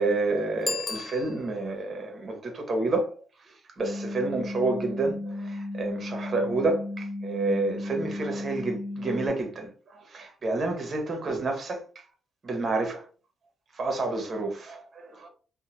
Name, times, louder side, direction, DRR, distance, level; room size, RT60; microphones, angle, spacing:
voice 1, 0.0-3.1 3.4-11.8 12.4-13.1 13.7-15.3, right 2 dB, 40° right, 0.9 m, -29 dB
Bicycle bell, 0.6-1.8, left 4 dB, 40° left, 0.4 m, -35 dB
sound 1, 3.8-9.3, left 2 dB, 85° left, 1.1 m, -35 dB
2.7 x 2.1 x 2.8 m
cardioid pair, 90°, 0 cm